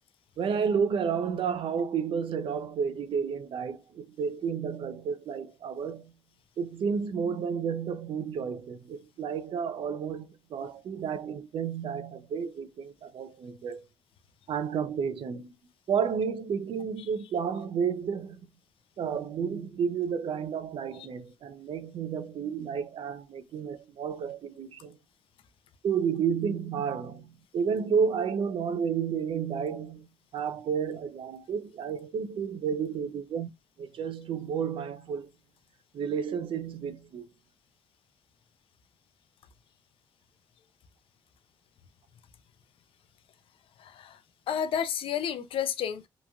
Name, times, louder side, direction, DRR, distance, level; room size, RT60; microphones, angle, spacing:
voice 1, 0.4-6.1 6.6-13.8 14.5-15.5 15.9-18.4 19.0-25.0 25.8-30.1 30.3-33.5 33.8-35.3 35.9-37.2, right 6 dB, 70° right, 0.5 m, -31 dB
voice 2, 43.8-44.2 44.5-46.1, left 8 dB, 80° left, 0.4 m, -31 dB
3.0 x 2.3 x 2.5 m
cardioid pair, 105°, 9 cm